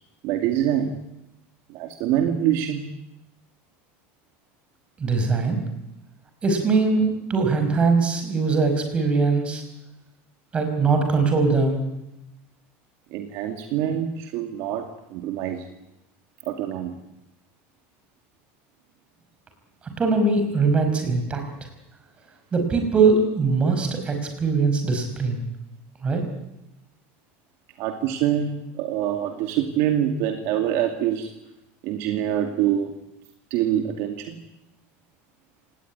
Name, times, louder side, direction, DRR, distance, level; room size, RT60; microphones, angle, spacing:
voice 1, 0.2-1.0 1.7-2.8 13.1-15.7 16.5-17.0 27.8-31.3 31.8-32.9 33.5-34.4, right 10 dB, 50° right, 5 dB, 2.3 m, -25 dB
voice 2, 5.0-5.6 6.4-9.6 10.5-11.8 20.0-21.4 22.5-25.4 26.0-26.2, right 4 dB, 15° right, 5 dB, 5.3 m, -21 dB
27.5 x 19.0 x 9.9 m, 0.88 s
cardioid pair, 170°, 6 cm